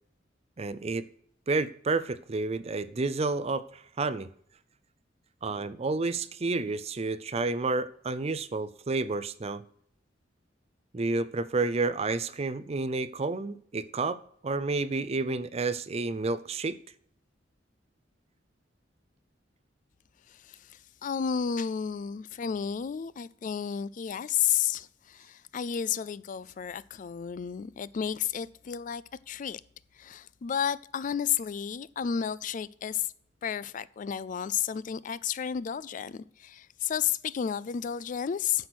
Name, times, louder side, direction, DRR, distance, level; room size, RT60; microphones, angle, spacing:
voice 1, 0.6-1.1 1.5-4.3 5.4-9.6 10.9-16.8, right 3 dB, 35° right, 0.5 m, -30 dB
voice 2, 20.3-29.6 29.9-33.1 33.4-38.7, left 8 dB, 45° left, 0.3 m, -32 dB
9.5 x 6.1 x 6.1 m
head